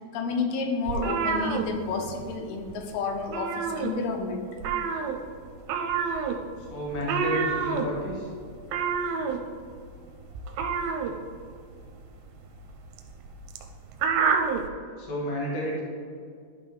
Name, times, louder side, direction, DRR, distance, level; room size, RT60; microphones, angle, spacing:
voice 1, 0.1-4.5, left 4 dB, 85° left, 4 dB, 2.8 m, -30 dB
sound 1, 0.9-2.4 2.6-2.9 3.2-4.3 4.6-14.7, right 6 dB, 80° right, 2.3 m, -29 dB
voice 2, 6.6-8.3 15.0-15.8, left 1 dB, 45° left, -4 dB, 1.9 m, -31 dB
11.0 x 5.5 x 3.6 m, 2.2 s
omnidirectional pair, 4.4 m